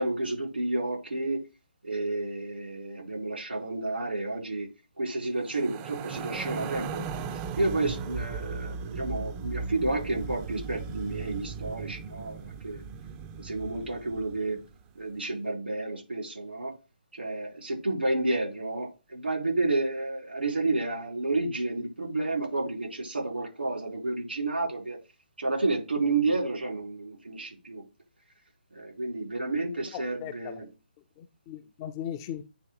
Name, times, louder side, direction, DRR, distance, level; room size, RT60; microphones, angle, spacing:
voice 1, 0.0-1.4 1.8-4.7 5.0-12.8 13.4-14.6 14.9-16.7 17.1-25.0 25.4-27.8 28.7-30.7, right 2 dB, 85° right, 1 dB, 4.2 m, -31 dB
sound 1, 5.4-14.7, right 5 dB, 20° right, 0.6 m, -37 dB
voice 2, 29.9-30.6 31.2-32.5, left 10 dB, 20° left, 10 dB, 0.5 m, -38 dB
8.7 x 3.1 x 4.6 m, 0.29 s
figure-of-eight pair, 150°, 6 cm